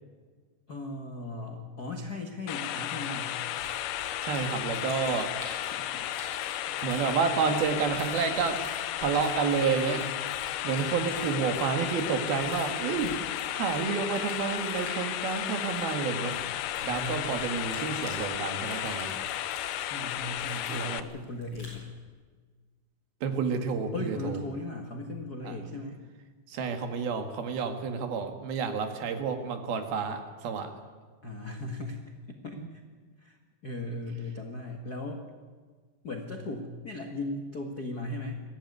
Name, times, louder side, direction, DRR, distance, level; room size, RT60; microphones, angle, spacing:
voice 1, 0.7-3.4 5.9-6.0 6.7-6.8 16.8-17.5 19.8-21.8 23.9-26.0 31.2-32.0 32.3-32.8 33.2-33.4 33.6-35.2 36.0-38.4, left 2 dB, 55° left, 3 dB, 1.0 m, -37 dB
sound 1, 2.5-21.0, left 12 dB, 80° left, 2.0 m, -34 dB
sound 2, 3.6-21.8, left 1 dB, 35° left, 8.1 m, -49 dB
voice 2, 4.2-5.3 6.8-8.6 9.0-10.1 10.6-13.2 13.5-16.4 16.9-19.1 20.7-21.1 23.2-24.4 25.4-25.7 26.5-30.7 32.6-32.7, right 6 dB, 70° right, 6 dB, 3.6 m, -30 dB
21.5 x 15.0 x 9.6 m, 1.5 s
omnidirectional pair, 4.6 m